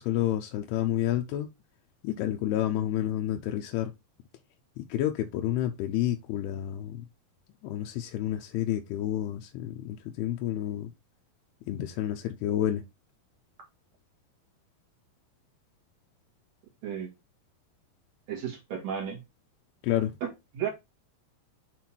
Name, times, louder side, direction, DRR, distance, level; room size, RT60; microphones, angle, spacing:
voice 1, 0.0-1.5 2.0-3.9 4.8-7.1 7.6-10.9 11.7-12.8 19.8-20.1, left 12 dB, 90° left, 2.6 m, -29 dB
voice 2, 18.3-19.2 20.2-20.3 20.5-20.7, right 8 dB, 55° right, 2.4 m, -33 dB
7.5 x 3.6 x 4.4 m
omnidirectional pair, 4.6 m